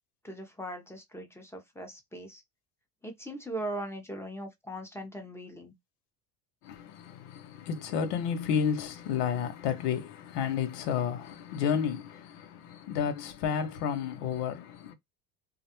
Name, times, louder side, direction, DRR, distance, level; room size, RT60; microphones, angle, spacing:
voice 1, 0.2-2.4 3.0-5.7, right 1 dB, 5° left, 0.7 m, -39 dB
voice 2, 6.6-14.9, left 7 dB, 85° left, 0.7 m, -31 dB
2.4 x 2.0 x 2.8 m
supercardioid pair, 90°, 46 cm